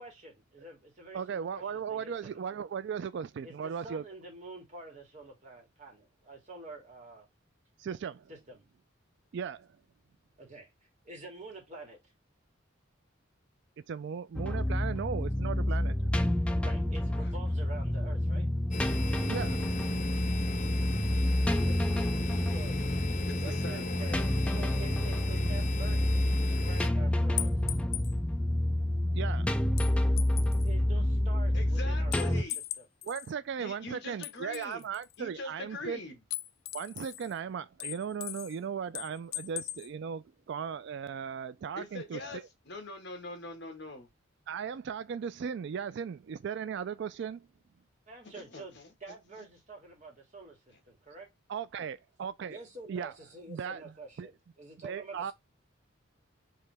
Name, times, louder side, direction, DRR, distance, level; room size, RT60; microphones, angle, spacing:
voice 1, 0.0-2.4 3.4-7.3 8.3-8.6 10.4-10.7 11.0-12.0 16.6-18.5 21.1-21.3 21.6-21.9 22.5-22.8 23.3-26.1 26.4-27.9 30.6-32.4 32.8-32.9 48.1-50.6 50.9-51.3 52.5-55.3, right 3 dB, 40° right, 2.1 m, -47 dB
voice 2, 1.1-4.0 7.8-8.3 9.3-9.7 13.9-16.1 19.3-19.7 29.1-29.5 33.0-36.0 36.7-42.4 44.5-47.4 51.5-52.6 52.9-53.1 53.5-53.8 54.2-54.3 54.8-55.3, right 7 dB, 60° right, 0.3 m, -37 dB
sound 1, 14.4-32.4, left 1 dB, 5° left, 0.4 m, -29 dB
sound 2, 18.7-26.9, left 2 dB, 40° left, 0.7 m, -36 dB
voice 3, 23.3-24.1 31.5-32.6 33.6-34.9 35.2-36.2 41.8-44.1 48.2-48.9 49.3-49.5 50.7-50.8, left 2 dB, 60° left, 1.7 m, -43 dB
sound 3, 27.4-28.1 29.8-30.7 32.1-33.3 34.2-35.2 36.3-37.3 37.8-38.6 38.9-39.9, left 15 dB, 90° left, 0.4 m, -38 dB
4.7 x 3.2 x 3.4 m
head